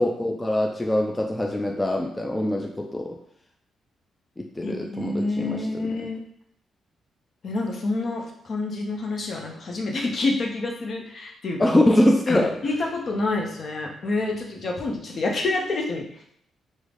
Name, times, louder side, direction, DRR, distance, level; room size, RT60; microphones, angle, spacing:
voice 1, 0.0-3.2 4.4-6.1 11.6-12.6, left 1 dB, 15° left, 2 dB, 0.3 m, -23 dB
voice 2, 4.6-6.2 7.4-11.8 12.3-16.0, left 3 dB, 55° left, 1 dB, 0.7 m, -28 dB
3.6 x 2.1 x 3.4 m, 0.68 s
cardioid pair, 80°, 0 cm